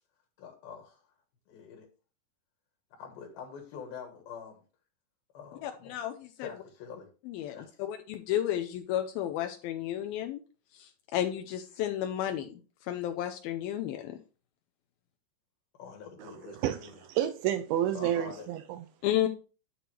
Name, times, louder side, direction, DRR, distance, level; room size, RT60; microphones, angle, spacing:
voice 1, 0.4-1.1 1.5-1.9 3.0-4.6 5.3-6.0 6.4-7.1 7.5-7.8 15.7-16.9 17.9-18.5, left 6 dB, 70° left, 3.1 m, -45 dB
voice 2, 5.6-6.5 7.3-7.6 7.9-10.4 10.7-12.5 12.9-14.2 19.0-19.3, left 11 dB, 85° left, 2.2 m, -32 dB
voice 3, 16.2-18.9, right 11 dB, 85° right, 2.2 m, -31 dB
11.0 x 6.8 x 3.2 m
omnidirectional pair, 4.9 m